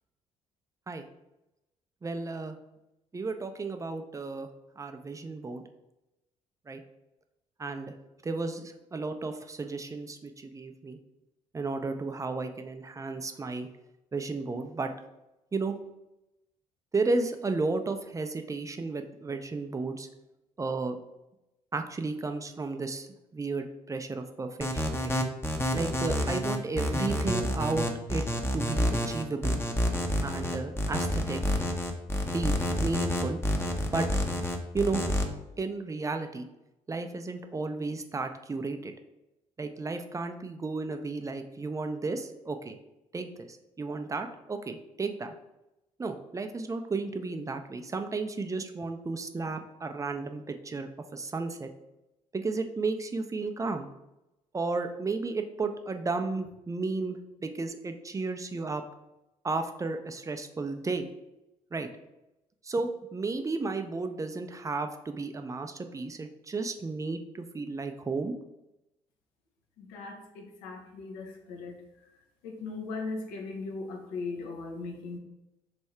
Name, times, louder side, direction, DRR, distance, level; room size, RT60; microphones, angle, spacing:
voice 1, 2.0-2.6 3.1-4.5 4.8-5.6 6.7-6.8 7.6-7.9 8.2-11.0 11.5-13.7 14.1-14.9 15.5-15.8 16.9-20.1 20.6-21.0 21.7-23.1 23.3-25.1 25.7-28.2 28.5-29.6 30.2-31.4 32.2-32.5 32.8-33.4 33.9-34.1 34.7-35.0 35.6-36.5 36.9-38.9 39.6-42.8 43.1-45.3 46.0-51.7 52.3-53.9 54.5-58.8 59.4-61.1 61.7-61.9 62.6-68.3, right 3 dB, 20° right, 6 dB, 0.5 m, -33 dB
sound 1, 24.6-35.2, left 1 dB, 15° left, 0.7 m, -28 dB
voice 2, 69.8-71.8 72.4-75.2, left 3 dB, 70° left, 2 dB, 0.7 m, -38 dB
3.2 x 2.6 x 4.5 m, 0.93 s
hypercardioid pair, 50°, 17 cm